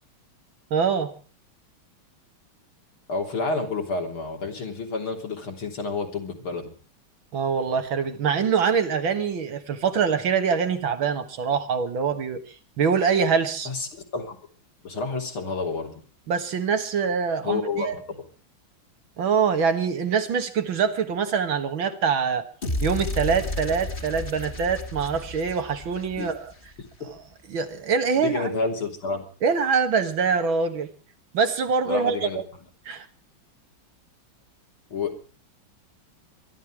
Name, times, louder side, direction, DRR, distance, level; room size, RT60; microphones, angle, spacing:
voice 1, 0.7-1.1 7.3-12.4 12.8-13.7 16.3-17.9 19.2-22.4 22.8-26.5 27.5-28.5 29.4-30.9 31.3-32.4 32.9-33.1, right 6 dB, 70° right, 8 dB, 2.4 m, -24 dB
voice 2, 3.1-6.7 13.7-14.4 14.8-15.9 17.4-18.2 26.2-26.3 28.2-29.2 31.9-32.4 34.9-35.2, left 3 dB, 80° left, 2 dB, 4.2 m, -29 dB
sound 1, 22.6-26.9, left 2 dB, 25° left, 1.9 m, -32 dB
24.0 x 12.5 x 4.7 m, 0.41 s
omnidirectional pair, 2.3 m